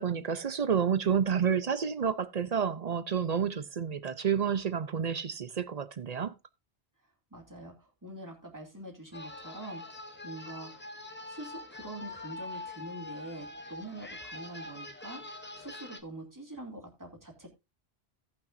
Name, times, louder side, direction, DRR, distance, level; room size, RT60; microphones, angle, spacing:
voice 1, 0.0-6.3, right 7 dB, 50° right, 0.5 m, -30 dB
voice 2, 7.3-10.9 11.3-17.5, right 1 dB, 15° right, 2.3 m, -45 dB
sound 1, 9.1-16.0, left 2 dB, 10° left, 0.6 m, -44 dB
17.0 x 6.0 x 2.5 m
omnidirectional pair, 1.1 m